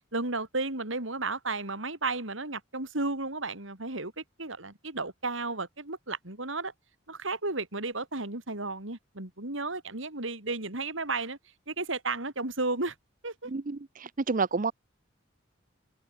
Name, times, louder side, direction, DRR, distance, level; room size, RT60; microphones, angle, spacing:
voice 1, 0.1-6.7 7.1-11.4 11.7-12.9 13.2-13.5, right 3 dB, 75° right, 4.3 m, -33 dB
voice 2, 13.5-14.7, right 4 dB, 45° right, 0.6 m, -30 dB
head